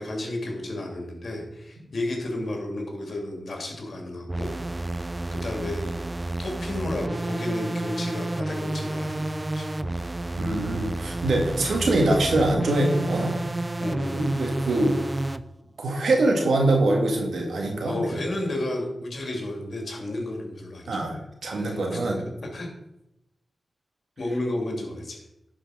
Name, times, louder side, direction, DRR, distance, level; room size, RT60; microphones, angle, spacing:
voice 1, 0.0-4.5 5.3-5.8 6.4-9.7 13.8-14.2 17.8-21.0 21.5-22.0 22.5-22.7 24.2-25.2, left 1 dB, 65° left, 1 dB, 2.6 m, -32 dB
sound 1, 4.3-15.4, right 2 dB, 25° right, 0.5 m, -30 dB
voice 2, 10.4-13.4 14.1-15.0 15.8-18.2 20.9-21.2 21.4-22.2, right 2 dB, 80° right, 1 dB, 2.0 m, -23 dB
11.0 x 5.0 x 5.0 m, 0.88 s
cardioid pair, 50°, 0 cm